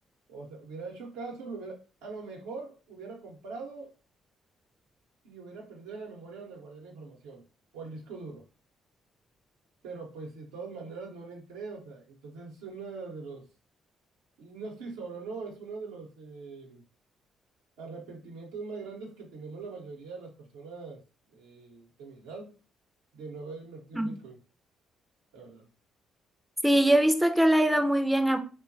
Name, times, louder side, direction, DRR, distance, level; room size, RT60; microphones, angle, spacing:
voice 1, 0.3-3.9 5.2-7.5 7.7-8.5 9.8-13.5 14.4-16.8 17.8-21.0 21.3-22.6 23.1-24.4 25.3-25.7, right 4 dB, 85° right, 0.7 m, -42 dB
voice 2, 26.6-28.4, right 1 dB, 5° right, 0.4 m, -22 dB
2.8 x 2.2 x 2.5 m
supercardioid pair, 55°, 0 cm